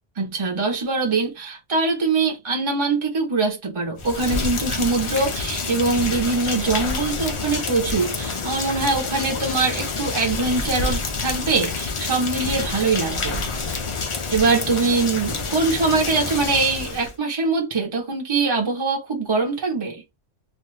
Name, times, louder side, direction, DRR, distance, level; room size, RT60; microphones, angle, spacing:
voice 1, 0.2-13.4 14.3-20.0, right 3 dB, 30° right, 0.8 m, -23 dB
Rain, 4.0-17.1, left 4 dB, 50° left, 0.3 m, -28 dB
2.6 x 2.3 x 3.2 m
omnidirectional pair, 1.2 m